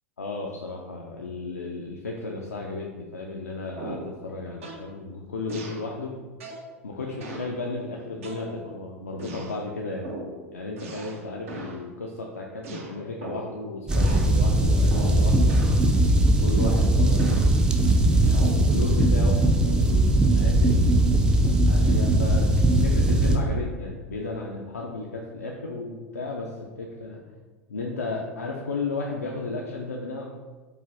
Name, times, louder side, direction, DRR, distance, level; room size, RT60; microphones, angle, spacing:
voice 1, 0.2-6.2 6.8-10.1 10.5-15.6 16.3-17.8 18.2-22.5 22.8-27.2 27.7-30.2, left 3 dB, 80° left, -1 dB, 0.4 m, -34 dB
sound 1, 3.8-4.1 4.6-4.9 5.5-5.9 6.4-6.7 7.2-7.5 8.2-8.8 9.2-9.6 10.0-10.4 10.8-11.2 11.5-11.8 12.6-13.6 13.9-14.3 14.9-15.2 15.5-15.8 16.6-17.5 18.3-18.6, right 1 dB, 60° right, 0.6 m, -38 dB
sound 2, 13.9-23.4, right 1 dB, 10° right, 0.4 m, -20 dB
4.9 x 2.5 x 2.5 m, 1.3 s
figure-of-eight pair, 85°, 8 cm